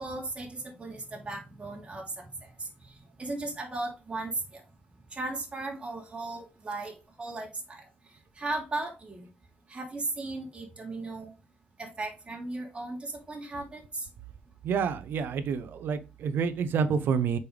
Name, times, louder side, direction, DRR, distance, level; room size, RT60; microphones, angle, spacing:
voice 1, 0.0-2.5 3.2-4.6 5.1-7.8 8.4-9.3 9.7-11.3 11.8-14.1, right 2 dB, 30° right, 3.0 m, -36 dB
voice 2, 14.6-17.4, right 6 dB, 80° right, 0.8 m, -28 dB
6.7 x 5.4 x 3.4 m
cardioid pair, 75°, 4 cm